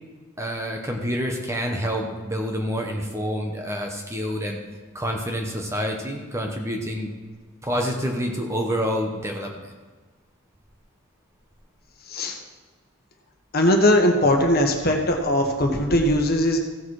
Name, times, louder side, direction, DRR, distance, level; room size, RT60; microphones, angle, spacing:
voice 1, 0.4-4.6 4.9-7.1 7.6-9.7, equal, 15° right, 1 dB, 1.1 m, -27 dB
voice 2, 13.5-16.6, left 1 dB, 45° left, 2 dB, 1.5 m, -20 dB
16.0 x 7.1 x 4.9 m, 1.4 s
head